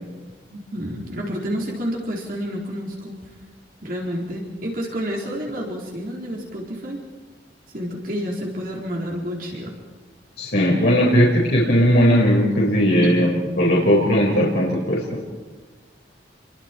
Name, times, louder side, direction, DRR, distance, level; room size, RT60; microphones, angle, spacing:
voice 1, 0.5-3.2 3.8-7.0 7.7-9.7 13.0-13.1, equal, 50° right, -2 dB, 4.3 m, -29 dB
voice 2, 10.4-13.3 13.6-15.0, equal, 60° left, -5 dB, 5.0 m, -17 dB
28.5 x 23.0 x 4.6 m, 1.3 s
head